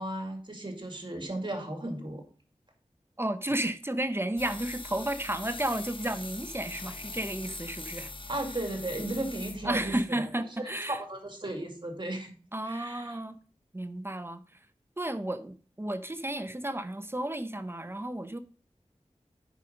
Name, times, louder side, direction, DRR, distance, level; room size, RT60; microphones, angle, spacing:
voice 1, 0.0-2.2 8.3-10.3 10.6-12.3 12.6-13.2, right 1 dB, 40° right, 2.4 m, -35 dB
voice 2, 3.2-8.1 9.6-11.0 12.5-13.4 13.7-14.4 15.0-18.4, right 1 dB, 20° right, 0.7 m, -32 dB
sound 1, 4.4-10.0, left 3 dB, 45° left, 0.9 m, -42 dB
9.0 x 5.1 x 5.2 m
wide cardioid pair, 70°, 12 cm